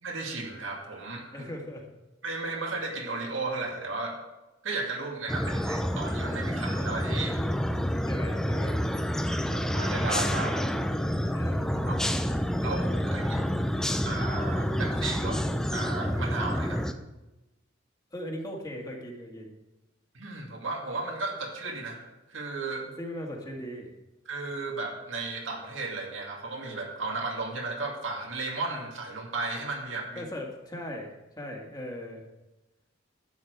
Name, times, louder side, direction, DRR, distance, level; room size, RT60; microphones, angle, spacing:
voice 1, 0.0-1.5 2.2-4.2 4.6-7.4 9.3-10.5 11.4-11.5 11.8-11.9 12.6-13.2 14.0-15.4 15.7-16.8 20.1-22.9 24.3-30.2, right 3 dB, 75° right, 0 dB, 2.4 m, -34 dB
voice 2, 1.3-1.9 8.1-8.8 10.3-10.6 11.2-12.4 13.0-13.3 18.1-19.5 22.9-23.9 30.2-32.2, equal, 20° left, 0 dB, 2.0 m, -39 dB
sound 1, 5.3-16.9, equal, 5° left, 0.6 m, -28 dB
11.5 x 8.8 x 4.7 m, 1.0 s
head